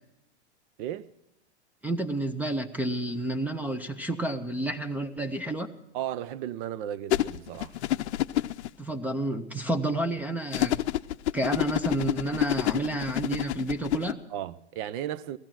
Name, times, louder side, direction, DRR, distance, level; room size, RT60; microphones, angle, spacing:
voice 1, 0.8-1.1 5.9-7.8 14.3-15.4, right 11 dB, 50° right, 0.7 m, -35 dB
voice 2, 1.8-5.7 8.8-10.8 11.3-14.2, right 1 dB, 5° right, 0.5 m, -30 dB
sound 1, 7.1-8.7 10.5-14.1, left 14 dB, 75° left, 0.6 m, -28 dB
16.5 x 13.5 x 5.9 m
hypercardioid pair, 125°, 35 cm